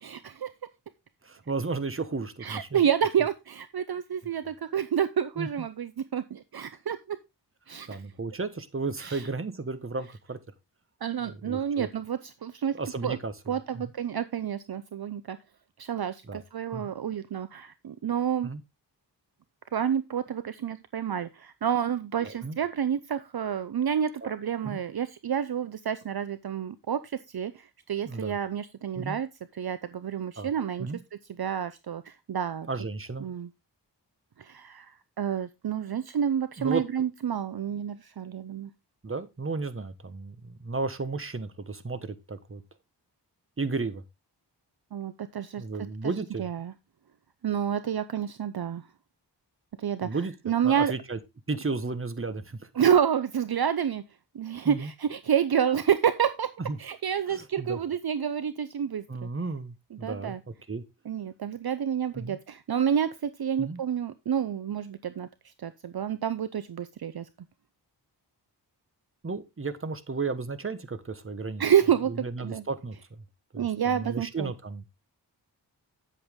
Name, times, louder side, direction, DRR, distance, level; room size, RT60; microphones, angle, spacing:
voice 1, 0.0-0.5 2.4-7.2 7.7-8.0 9.0-9.3 11.0-13.2 13.5-15.4 15.8-18.5 19.7-27.0 27.3-29.3 29.5-30.9 31.4-32.7 33.2-33.5 34.4-34.9 35.2-38.7 44.9-45.6 46.0-46.1 46.4-46.7 47.4-48.8 49.8-50.1 50.5-50.9 52.8-54.0 54.3-56.5 56.8-59.3 59.9-60.4 61.1-65.3 65.6-67.3 71.6-72.6 73.6-74.5, right 8 dB, 60° right, 13 dB, 0.7 m, -29 dB
voice 2, 1.2-2.8 5.4-5.7 7.9-10.4 11.2-11.9 12.7-13.9 16.3-16.4 16.7-16.9 18.4-18.6 22.2-22.6 24.2-24.3 24.6-24.8 28.0-28.4 28.9-29.2 30.4-30.5 30.8-31.0 32.7-33.3 36.6-36.8 39.0-42.6 43.6-44.0 45.6-46.5 50.0-50.3 50.6-51.2 51.5-52.6 54.6-54.9 56.7-56.8 57.3-57.8 59.1-60.4 60.7-60.8 62.1-62.4 63.6-63.8 69.2-71.6 72.1-73.0 73.5-75.0, right 3 dB, 30° right, 11 dB, 1.2 m, -34 dB
8.7 x 8.0 x 3.6 m, 0.23 s
wide cardioid pair, 80°, 42 cm